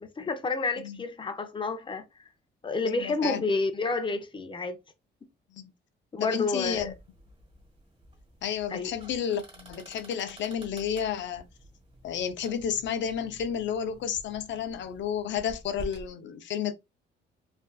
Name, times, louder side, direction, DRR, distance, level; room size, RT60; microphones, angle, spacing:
voice 1, 0.0-2.3 2.6-4.8 6.1-6.9 8.7-8.9, left 3 dB, 25° left, 0.6 m, -30 dB
voice 2, 2.9-3.4 5.5-5.7 6.2-6.9 8.4-11.4 12.0-16.7, left 8 dB, 65° left, 0.6 m, -31 dB
sound 1, 6.6-16.1, right 1 dB, 30° right, 1.4 m, -49 dB
3.3 x 2.5 x 2.3 m
cardioid pair, 90°, 20 cm